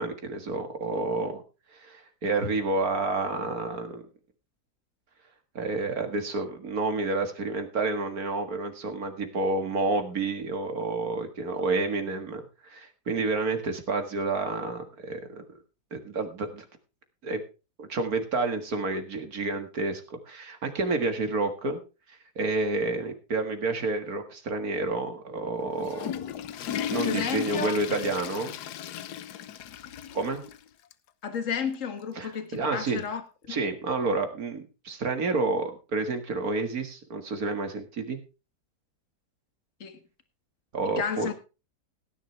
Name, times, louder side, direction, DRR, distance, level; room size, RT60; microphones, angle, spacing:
voice 1, 0.0-1.4 1.7-4.1 5.6-15.5 15.9-16.7 17.2-17.4 17.8-21.8 22.1-26.1 26.9-28.5 30.1-30.4 32.2-33.0 33.5-38.2 40.7-41.3, right 3 dB, 65° right, 2.2 m, -29 dB
Water / Toilet flush, 25.6-30.6 30.9-31.0 31.7-31.8 33.1-33.2, left 9 dB, 80° left, 1.4 m, -35 dB
voice 2, 27.1-27.8 31.2-33.2 33.5-33.6 39.8-40.0 40.9-41.3, left 6 dB, 50° left, 1.9 m, -32 dB
17.0 x 10.0 x 3.3 m
omnidirectional pair, 1.7 m